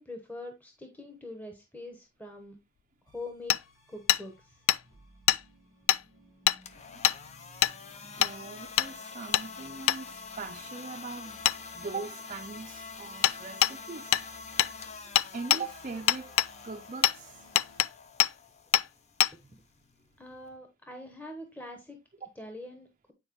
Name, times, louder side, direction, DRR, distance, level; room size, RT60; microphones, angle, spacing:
voice 1, 0.0-2.6 3.1-3.6 3.9-4.6 20.2-22.0 22.4-23.1, left 2 dB, 10° left, 1.0 m, -43 dB
sound 1, 3.1-17.8, left 1 dB, 70° left, 4.8 m, -58 dB
Hammer, 3.5-3.6 4.1-4.2 4.7-4.8 5.3-5.4 5.9-6.0 6.5-6.6 7.0-7.2 7.6-7.8 8.2-8.3 8.8-8.9 9.3-9.5 9.9-10.0 11.5-11.6 13.2-13.4 13.6-13.7 14.1-14.3 14.6-14.7 15.2-15.6 16.1-16.5 17.0-17.2 17.6-17.9 18.2-18.3 18.7-18.9 19.2-19.3, left 13 dB, 85° left, 0.3 m, -23 dB
sound 2, 6.6-20.6, left 5 dB, 35° left, 0.6 m, -46 dB
voice 2, 8.0-11.4 11.7-14.1 15.3-16.3 16.6-17.4 22.2-22.3, right 4 dB, 35° right, 0.5 m, -41 dB
9.0 x 4.4 x 3.0 m
head